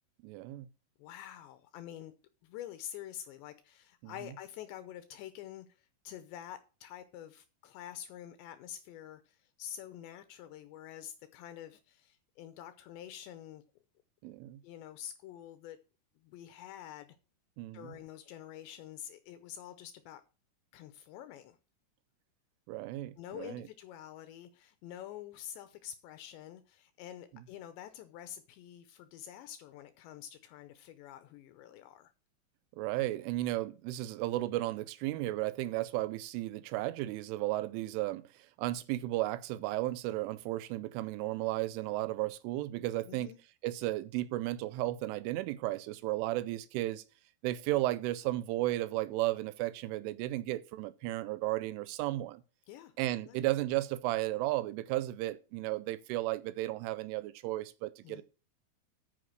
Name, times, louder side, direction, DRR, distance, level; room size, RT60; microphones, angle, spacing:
voice 1, 0.2-0.7 4.0-4.1 14.2-14.6 17.6-17.9 22.7-23.7 27.3-27.4 32.8-43.4 43.6-47.0 47.4-52.4 53.0-58.2, right 16 dB, 85° right, 3.1 m, -34 dB
voice 2, 1.0-2.1 2.4-13.6 14.6-15.8 16.2-17.2 17.7-20.2 20.7-21.6 23.2-32.1 43.1-43.4 52.7-52.9 53.2-53.4 58.0-58.2, left 11 dB, 80° left, 2.7 m, -47 dB
9.3 x 6.8 x 6.2 m
omnidirectional pair, 5.7 m